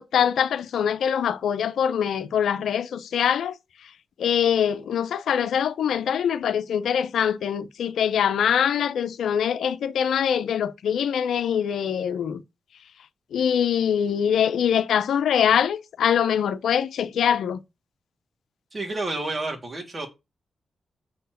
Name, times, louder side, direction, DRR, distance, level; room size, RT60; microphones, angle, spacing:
voice 1, 0.0-3.5 4.2-12.4 13.3-17.6, left 8 dB, 85° left, 0.7 m, -23 dB
voice 2, 18.7-20.1, right 2 dB, 40° right, 3.3 m, -30 dB
6.8 x 4.6 x 6.5 m
cardioid pair, 55°, 0 cm